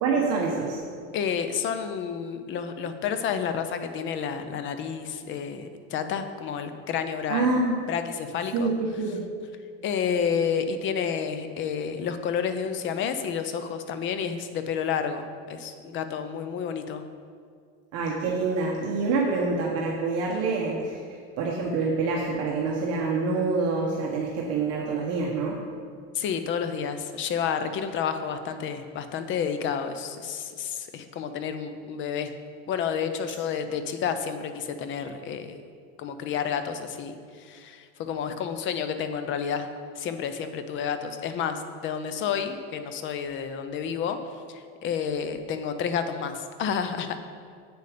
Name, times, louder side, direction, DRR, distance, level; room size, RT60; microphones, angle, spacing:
voice 1, 0.0-0.8 7.3-7.8 8.5-9.2 17.9-21.0 21.4-25.6, right 3 dB, 50° right, -2 dB, 1.1 m, -26 dB
voice 2, 1.1-7.5 7.9-8.7 9.8-17.0 26.1-32.3 32.7-35.5 36.0-39.7 40.0-44.2 44.5-47.2, left 7 dB, 35° left, 9 dB, 0.6 m, -30 dB
8.0 x 6.8 x 5.0 m, 2.1 s
cardioid pair, 150°, 32 cm